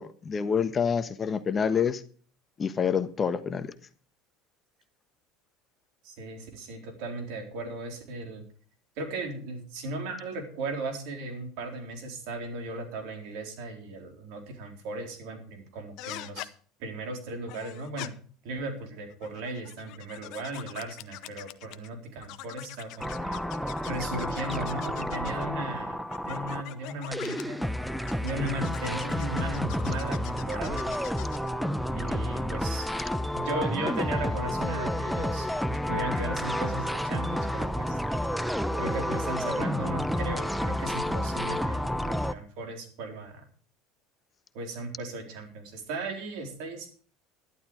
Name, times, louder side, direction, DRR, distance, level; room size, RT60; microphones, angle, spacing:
voice 1, 0.0-2.0 2.6-3.7, left 7 dB, 30° left, 1.3 m, -27 dB
voice 2, 6.0-8.4 9.0-16.5 16.8-18.1 18.4-27.7 28.2-30.8 32.0-32.9 33.3-38.0 38.8-43.5 44.5-46.9, right 2 dB, 65° right, 3.9 m, -36 dB
sound 1, 16.0-16.5 17.5-18.1 19.1-21.9 22.2-25.5 26.1-27.4 28.1-31.5, left 16 dB, 60° left, 0.8 m, -43 dB
sound 2, 23.0-26.7 27.1-42.3, equal, ahead, 1.0 m, -30 dB
12.0 x 11.5 x 4.8 m
hypercardioid pair, 75°, 0 cm